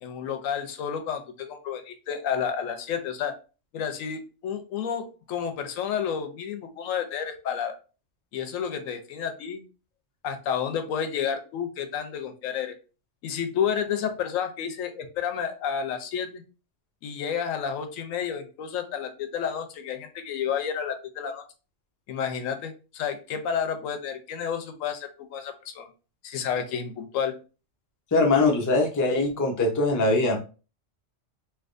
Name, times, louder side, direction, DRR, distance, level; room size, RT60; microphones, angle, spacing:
voice 1, 0.0-3.3 3.7-7.8 8.3-9.6 10.2-12.8 13.2-16.4 17.0-21.4 22.1-25.9 26.2-27.3, left 7 dB, 85° left, 6 dB, 1.0 m, -30 dB
voice 2, 28.1-30.4, left 2 dB, 20° left, 0 dB, 0.5 m, -22 dB
3.3 x 2.9 x 2.5 m, 0.34 s
omnidirectional pair, 1.4 m